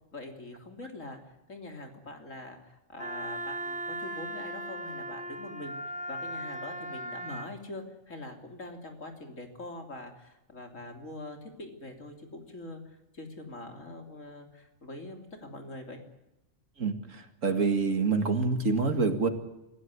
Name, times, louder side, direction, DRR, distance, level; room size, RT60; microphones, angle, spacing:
voice 1, 0.1-1.2 1.5-12.8 13.1-16.0, left 2 dB, 80° left, 4 dB, 3.7 m, -44 dB
Wind instrument woodwind instrument, 3.0-7.5, right 1 dB, 5° right, 1.3 m, -38 dB
voice 2, 16.8-19.3, right 4 dB, 85° right, 7 dB, 2.5 m, -27 dB
26.0 x 15.0 x 9.6 m, 0.96 s
omnidirectional pair, 1.3 m